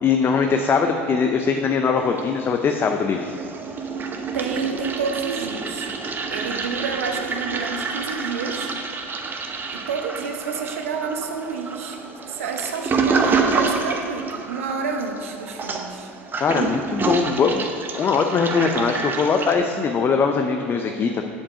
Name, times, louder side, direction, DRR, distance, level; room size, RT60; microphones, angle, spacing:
voice 1, 0.0-3.3 16.4-17.7 17.9-21.2, left 5 dB, 30° left, 5 dB, 0.6 m, -21 dB
Toilet flush, 2.0-2.8 3.1-19.6, right 4 dB, 30° right, 0.9 m, -28 dB
voice 2, 4.3-5.9 6.3-8.7 9.7-12.0 12.3-16.1, right 5 dB, 75° right, 5 dB, 0.9 m, -29 dB
7.4 x 7.2 x 4.9 m, 2.4 s
hypercardioid pair, 75°, 7 cm